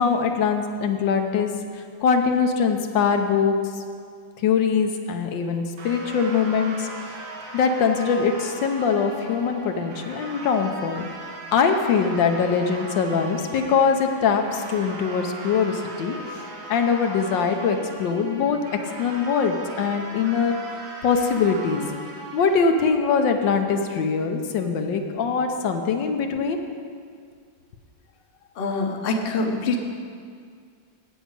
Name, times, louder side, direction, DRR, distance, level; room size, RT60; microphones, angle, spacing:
voice 1, 0.0-1.5 2.0-3.5 4.4-6.9 7.5-11.0 11.5-16.2 16.7-20.6 21.0-21.8 22.3-26.6, left 6 dB, 75° left, 5 dB, 1.5 m, -22 dB
sound 1, 5.8-22.6, right 2 dB, 85° right, 2.1 m, -38 dB
voice 2, 28.6-29.8, left 3 dB, 40° left, 2 dB, 0.9 m, -25 dB
8.3 x 7.2 x 8.7 m, 2.2 s
omnidirectional pair, 2.0 m